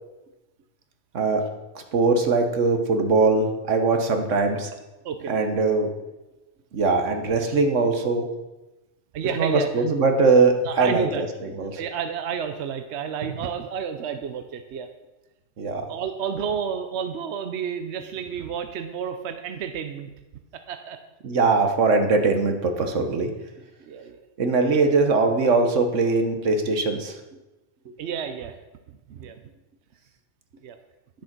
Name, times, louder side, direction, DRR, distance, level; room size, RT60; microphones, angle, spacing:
voice 1, 1.9-4.7 5.3-5.9 6.7-8.3 9.4-11.3 11.5-11.8 15.6-15.9 21.2-23.3 24.4-27.1, right 3 dB, 85° right, 5 dB, 1.5 m, -21 dB
voice 2, 9.1-9.7 10.6-11.2 11.8-14.9 15.9-20.1 20.5-21.0 23.9-24.2 24.7-24.8 28.0-28.6 29.1-29.4 30.6-30.8, right 7 dB, 70° right, 8 dB, 0.9 m, -30 dB
10.5 x 7.0 x 6.0 m, 1.0 s
omnidirectional pair, 1.2 m